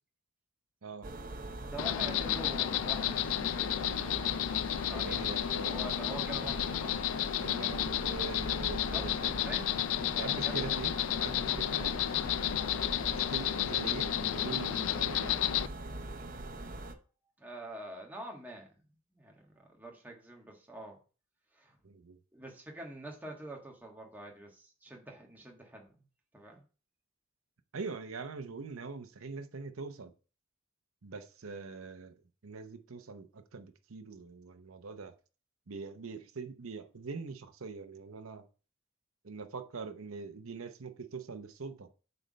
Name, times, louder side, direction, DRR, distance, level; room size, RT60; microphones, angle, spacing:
sound 1, 1.0-16.9, right 2 dB, 40° right, 0.7 m, -42 dB
voice 1, 1.7-3.8 4.8-5.2 5.5-7.0 8.7-10.8 17.4-18.7 19.1-21.0 21.5-21.8 22.3-25.9 26.3-26.6, right 1 dB, 10° right, 1.4 m, -46 dB
Insect, 1.8-15.7, left 11 dB, 75° left, 0.4 m, -32 dB
voice 2, 5.0-5.9 7.4-9.3 10.2-10.9 11.2-12.2 13.1-15.3 21.8-22.2 27.7-30.1 31.0-32.2 32.4-35.1 35.7-38.5 39.2-41.9, right 4 dB, 85° right, 0.8 m, -43 dB
7.9 x 3.4 x 5.1 m
head